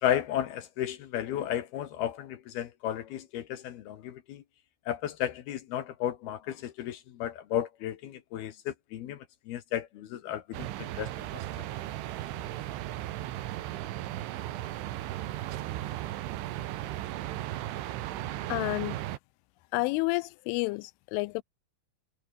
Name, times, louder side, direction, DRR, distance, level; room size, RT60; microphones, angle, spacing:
voice 1, 0.0-4.4 4.9-9.2 9.5-11.1, left 11 dB, 65° left, 2.9 m, -33 dB
sound 1, 10.5-19.2, right 14 dB, 80° right, 3.9 m, -36 dB
voice 2, 18.5-19.0 19.7-21.4, left 24 dB, 85° left, 3.1 m, -30 dB
omnidirectional pair, 5.5 m